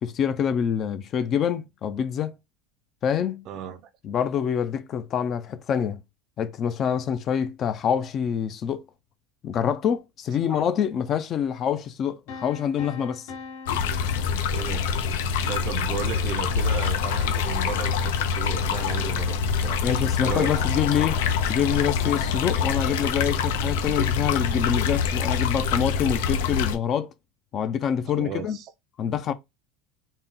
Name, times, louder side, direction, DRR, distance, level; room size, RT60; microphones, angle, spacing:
voice 1, 0.0-2.3 3.0-3.5 4.0-6.0 6.4-8.8 9.4-13.3 19.8-21.2 21.5-27.1 27.5-28.6 29.0-29.3, left 8 dB, 30° left, 0.4 m, -26 dB
voice 2, 3.5-3.8 10.4-10.7 14.5-19.9 20.2-20.6 28.1-28.7, right 9 dB, 35° right, 0.5 m, -35 dB
sound 1, 12.3-15.2, left 4 dB, 65° left, 1.1 m, -42 dB
sound 2, 13.7-26.8, left 6 dB, 90° left, 0.6 m, -25 dB
4.0 x 2.3 x 3.6 m
cardioid pair, 170°, 0 cm